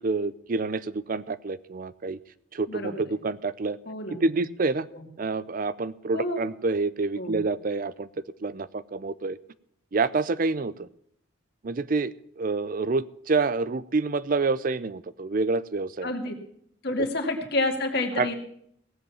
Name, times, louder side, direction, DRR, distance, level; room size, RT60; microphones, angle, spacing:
voice 1, 0.0-2.2 2.5-3.8 4.2-4.9 5.2-8.1 8.4-9.4 9.9-10.9 11.6-16.1 18.2-18.3, right 3 dB, 45° right, 17 dB, 0.5 m, -27 dB
voice 2, 2.7-3.0 3.9-4.4 4.9-5.1 6.1-6.5 7.2-7.4 16.0-16.3 16.8-18.4, left 2 dB, 55° left, 3 dB, 2.4 m, -29 dB
17.5 x 7.9 x 7.1 m, 0.68 s
head